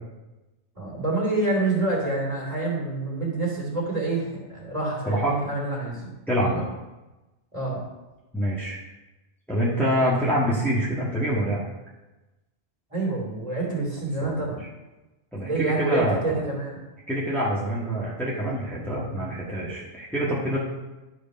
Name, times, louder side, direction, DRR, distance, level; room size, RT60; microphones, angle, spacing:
voice 1, 0.7-6.6 7.5-7.8 12.9-14.6 15.4-16.8, right 2 dB, 35° right, -3 dB, 3.1 m, -27 dB
voice 2, 5.1-5.4 6.3-6.6 8.3-8.8 9.5-11.6 14.2-14.5 15.3-16.4 17.1-20.6, equal, ahead, -7 dB, 1.7 m, -26 dB
12.5 x 5.1 x 5.4 m, 1.1 s
omnidirectional pair, 1.2 m